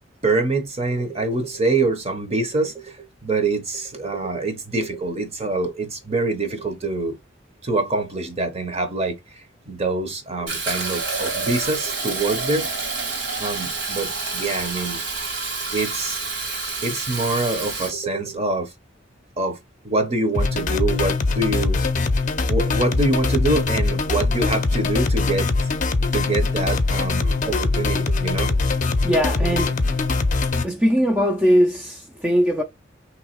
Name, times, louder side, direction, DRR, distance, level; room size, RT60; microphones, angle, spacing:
voice 1, 0.2-7.2 7.6-9.2 9.7-13.1 13.4-15.0 15.7-16.2 16.8-18.7 19.4-19.6 19.8-22.1 22.5-25.7 26.1-28.6 29.6-29.7, right 2 dB, 35° right, 0.9 m, -25 dB
Fill (with liquid), 10.5-17.9, right 3 dB, 65° right, 1.8 m, -28 dB
sound 1, 20.3-30.6, left 3 dB, 40° left, 0.6 m, -22 dB
voice 2, 29.0-29.8 30.6-32.6, equal, 10° right, 0.5 m, -20 dB
3.3 x 3.0 x 4.5 m
head